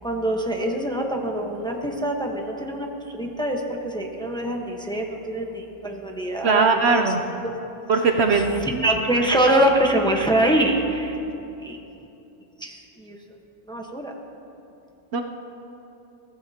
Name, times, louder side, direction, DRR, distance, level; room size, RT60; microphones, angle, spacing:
voice 1, 0.0-2.9 3.1-7.1 8.3-11.2 11.6-11.8 12.6-13.2 13.7-14.1, right 1 dB, 5° left, 1 dB, 1.0 m, -24 dB
voice 2, 6.4-7.2 7.9-8.7 15.1-15.2, right 4 dB, 60° right, 4 dB, 0.9 m, -20 dB
21.5 x 15.0 x 2.9 m, 2.9 s
omnidirectional pair, 1.3 m